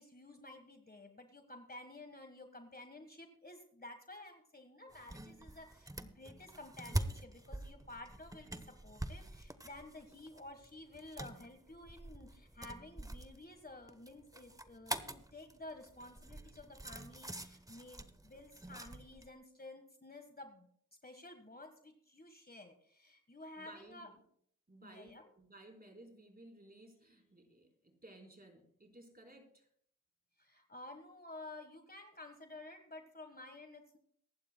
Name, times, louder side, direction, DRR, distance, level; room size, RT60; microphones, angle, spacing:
voice 1, 0.0-20.7 21.0-24.1 24.8-25.3 30.4-34.0, left 2 dB, 25° left, 6 dB, 1.5 m, -52 dB
sound 1, 4.9-19.3, right 1 dB, 10° right, 0.9 m, -45 dB
voice 2, 23.6-24.2 24.7-29.7, right 1 dB, 25° right, 1 dB, 4.2 m, -57 dB
24.0 x 11.5 x 2.3 m, 0.64 s
cardioid pair, 50°, 33 cm